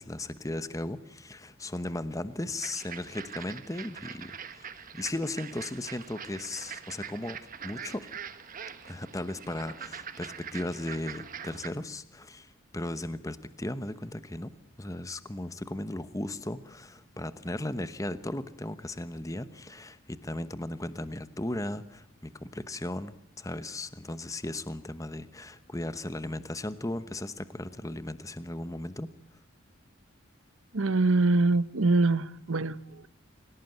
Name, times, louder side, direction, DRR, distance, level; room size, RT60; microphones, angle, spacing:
voice 1, 0.0-7.4 7.6-8.1 8.9-14.5 14.8-29.1, left 1 dB, 15° left, 13 dB, 1.0 m, -36 dB
sound 1, 2.6-11.7, right 7 dB, 40° right, 1.3 m, -43 dB
voice 2, 30.7-33.1, right 3 dB, 70° right, 15 dB, 1.0 m, -24 dB
26.5 x 17.5 x 9.3 m, 0.79 s
head